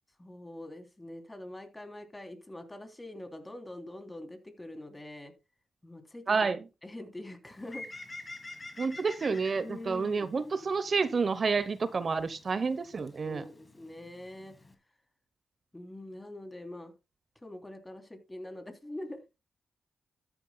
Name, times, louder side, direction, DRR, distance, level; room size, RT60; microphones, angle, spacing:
voice 1, 0.2-5.3 5.8-6.6 6.8-7.9 9.6-10.3 13.2-14.5 15.7-16.9 17.4-19.2, left 1 dB, 15° left, 6 dB, 3.1 m, -44 dB
voice 2, 6.3-6.6 8.8-13.4, right 4 dB, 50° right, 14 dB, 0.8 m, -29 dB
Bird, 7.4-14.7, left 2 dB, 30° left, 2.4 m, -49 dB
13.0 x 9.8 x 2.2 m, 0.26 s
cardioid pair, 60°, 0 cm